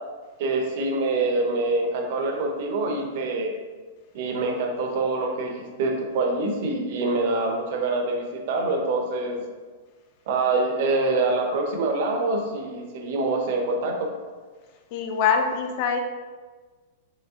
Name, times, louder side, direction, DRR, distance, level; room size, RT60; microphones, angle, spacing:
voice 1, 0.4-3.5 4.1-9.4 10.3-14.1, right 2 dB, 45° right, 3 dB, 0.7 m, -25 dB
voice 2, 14.9-16.0, left 6 dB, 35° left, 4 dB, 0.5 m, -23 dB
5.8 x 3.2 x 2.8 m, 1.4 s
supercardioid pair, 180°, 0 cm